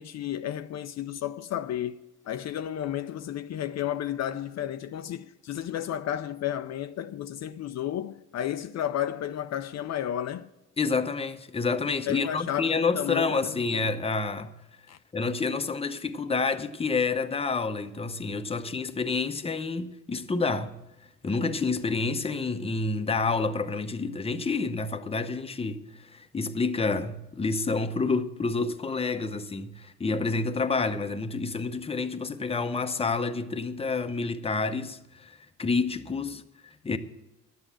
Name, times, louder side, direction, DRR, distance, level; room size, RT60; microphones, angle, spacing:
voice 1, 0.0-2.0 2.2-10.5 12.1-13.9 14.9-15.0, left 11 dB, 60° left, 0.5 m, -32 dB
voice 2, 10.8-14.6 15.1-20.7 21.2-37.0, left 4 dB, 20° left, 0.8 m, -29 dB
11.5 x 7.9 x 7.3 m
cardioid pair, 90°, 30 cm